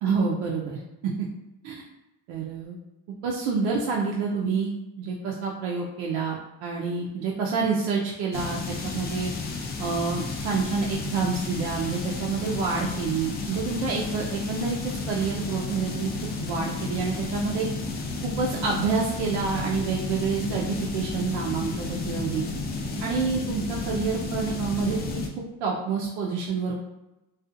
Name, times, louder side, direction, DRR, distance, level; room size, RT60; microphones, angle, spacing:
voice 1, 0.0-1.3 1.6-1.8 2.3-2.8 3.2-9.3 9.8-17.7 18.2-22.4 23.0-25.2 25.6-26.8, right 5 dB, 75° right, -2 dB, 0.5 m, -28 dB
sound 1, 8.3-25.3, left 4 dB, 25° left, 0.3 m, -32 dB
2.5 x 2.3 x 2.5 m, 0.97 s
cardioid pair, 120°, 41 cm